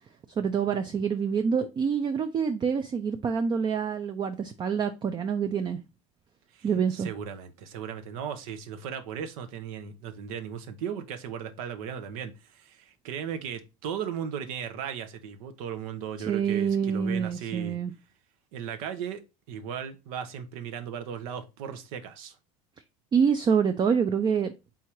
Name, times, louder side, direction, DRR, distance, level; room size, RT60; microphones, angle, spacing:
voice 1, 0.4-5.8 6.6-7.1 16.2-17.9 23.1-24.5, right 6 dB, 25° right, 0.4 m, -26 dB
voice 2, 6.5-17.8 18.5-19.2 19.5-22.3, right 8 dB, 80° right, 0.8 m, -36 dB
3.7 x 2.7 x 4.5 m
supercardioid pair, 100°, 18 cm